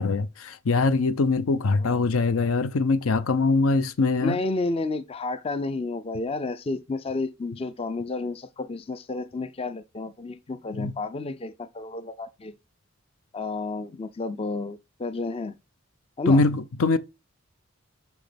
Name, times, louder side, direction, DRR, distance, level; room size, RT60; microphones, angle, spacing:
voice 1, 0.0-4.4 10.8-10.9 16.3-17.0, left 3 dB, 75° left, 0.5 m, -22 dB
voice 2, 4.2-12.5 13.3-15.5 16.2-16.4, left 3 dB, 25° left, 0.4 m, -31 dB
6.2 x 5.8 x 3.3 m
head